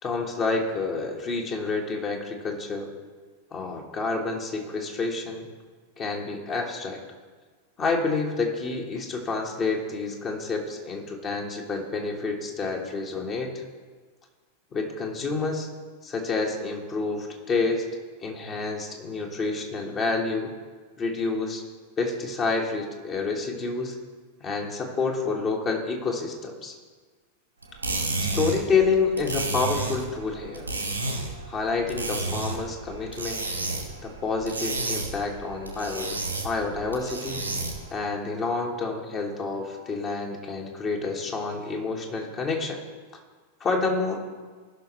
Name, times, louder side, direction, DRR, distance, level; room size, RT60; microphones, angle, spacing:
voice 1, 0.0-2.9 3.5-5.5 6.0-7.0 7.8-13.6 14.7-15.7 16.0-17.8 18.2-20.5 21.0-21.6 22.0-24.0 24.4-26.8 28.2-30.7 31.5-33.4 34.0-36.2 36.4-37.4 37.9-42.8 43.6-44.2, left 4 dB, 30° left, 1 dB, 1.4 m, -28 dB
sound 1, 27.6-37.9, right 3 dB, 85° right, 1.7 m, -32 dB
16.5 x 5.9 x 3.2 m, 1.5 s
figure-of-eight pair, 90°, 0 cm